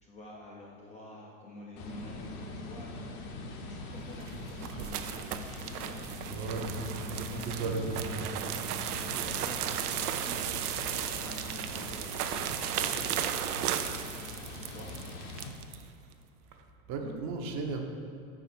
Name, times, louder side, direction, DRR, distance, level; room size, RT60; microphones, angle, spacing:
voice 1, 0.0-3.2 3.7-5.1 5.5-8.6 8.9-13.9 14.6-14.9, left 2 dB, 15° left, -3 dB, 0.4 m, -49 dB
sound 1, 1.8-15.5, left 2 dB, 50° left, 0.9 m, -42 dB
sound 2, 4.1-15.8, right 10 dB, 85° right, 0.5 m, -35 dB
voice 2, 6.3-8.0 15.7-15.9 16.9-17.8, right 3 dB, 40° right, 3 dB, 0.8 m, -35 dB
4.8 x 4.7 x 5.7 m, 2.5 s
hypercardioid pair, 115°, 44 cm